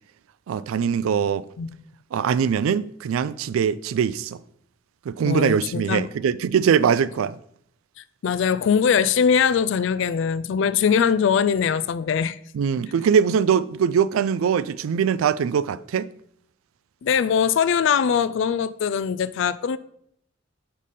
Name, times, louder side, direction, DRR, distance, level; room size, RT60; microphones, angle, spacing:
voice 1, 0.5-1.4 2.1-4.4 5.1-7.3 12.5-16.1, right 7 dB, 85° right, 0.3 m, -22 dB
voice 2, 5.2-6.1 8.2-12.4 17.0-19.8, left 7 dB, 60° left, 0.3 m, -21 dB
5.4 x 4.1 x 4.9 m
head